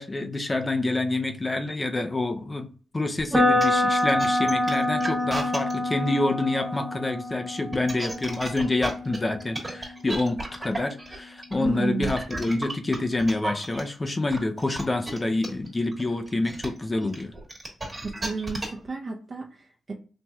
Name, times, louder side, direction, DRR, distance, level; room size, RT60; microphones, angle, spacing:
voice 1, 0.0-2.7 2.9-17.3, left 2 dB, 20° left, 0.5 m, -27 dB
sound 1, 3.2-5.7 7.5-13.8 14.3-18.9, right 2 dB, 20° right, 1.3 m, -34 dB
sound 2, 3.3-11.3, left 1 dB, 5° right, 0.8 m, -27 dB
voice 2, 11.6-12.1 18.0-19.9, right 3 dB, 35° right, 0.6 m, -32 dB
4.1 x 3.0 x 2.3 m
cardioid pair, 105°, 0 cm